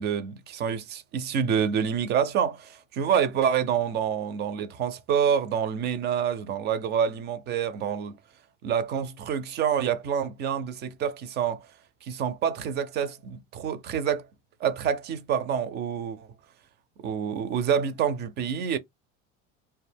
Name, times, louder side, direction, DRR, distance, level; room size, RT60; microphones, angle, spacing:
voice 1, 0.0-8.2 8.6-11.7 12.0-14.3 14.6-16.3 17.0-18.8, right 8 dB, 35° right, 0.4 m, -27 dB
2.3 x 2.2 x 3.3 m
cardioid pair, 135°, 29 cm